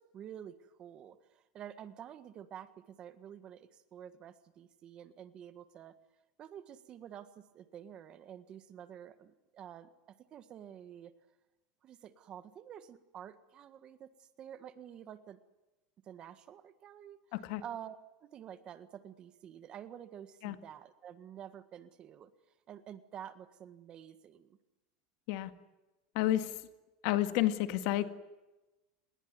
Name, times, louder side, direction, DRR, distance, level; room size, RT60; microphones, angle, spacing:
voice 1, 0.0-5.9 6.4-11.1 11.8-15.4 16.0-17.2 17.6-22.3 22.7-24.6, right 9 dB, 30° right, 12 dB, 1.6 m, -49 dB
voice 2, 17.3-17.6 20.4-20.6 25.3-25.5 26.1-26.6 27.0-28.1, left 14 dB, 55° left, 10 dB, 2.0 m, -30 dB
29.5 x 20.5 x 9.6 m, 1.1 s
supercardioid pair, 165°, 3 cm